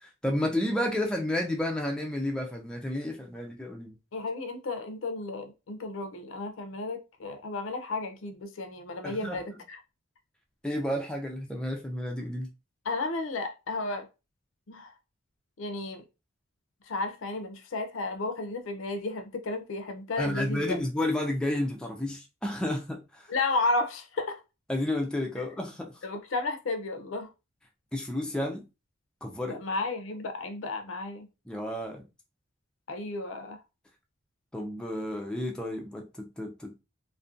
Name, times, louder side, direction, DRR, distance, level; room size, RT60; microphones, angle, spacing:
voice 1, 0.0-4.0 9.0-9.4 10.6-12.5 20.2-23.3 24.7-25.9 27.9-28.6 29.2-29.6 31.5-32.0 34.5-36.8, left 1 dB, 5° left, 0.3 m, -31 dB
voice 2, 4.1-9.8 12.9-14.1 14.7-14.9 15.6-16.0 16.9-20.8 23.3-24.4 26.0-27.3 29.5-31.3 32.9-33.6, left 3 dB, 80° left, 0.5 m, -33 dB
2.4 x 2.2 x 2.4 m
head